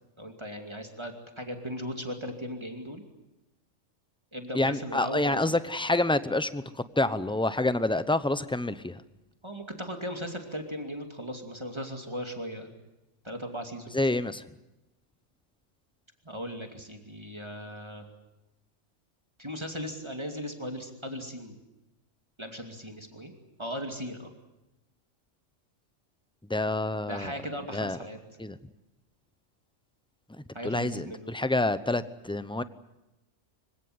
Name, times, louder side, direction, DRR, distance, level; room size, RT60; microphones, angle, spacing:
voice 1, 0.2-3.0 4.3-5.5 9.4-12.7 13.2-14.0 16.2-18.0 19.4-21.6 22.4-23.3 23.6-24.3 27.1-28.2 30.5-31.3, equal, 20° right, 4 dB, 2.6 m, -37 dB
voice 2, 4.5-9.0 13.9-14.4 26.5-27.3 27.7-28.0 28.4-28.6 30.6-32.6, left 2 dB, 5° left, 13 dB, 0.6 m, -27 dB
25.5 x 17.0 x 9.6 m, 0.95 s
omnidirectional pair, 1.3 m